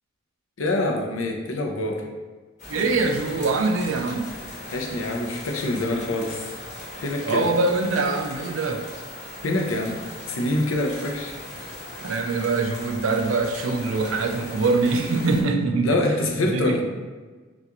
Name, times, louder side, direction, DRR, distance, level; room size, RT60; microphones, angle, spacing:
voice 1, 0.6-2.0 4.7-6.5 7.0-7.4 9.4-11.4 15.8-16.8, left 1 dB, 85° left, 1 dB, 0.7 m, -25 dB
sound 1, 2.6-15.4, left 1 dB, 40° left, 1.1 m, -38 dB
voice 2, 2.7-4.3 7.3-8.8 12.0-16.8, right 3 dB, 80° right, 5 dB, 0.5 m, -24 dB
6.0 x 2.4 x 3.0 m, 1.4 s
head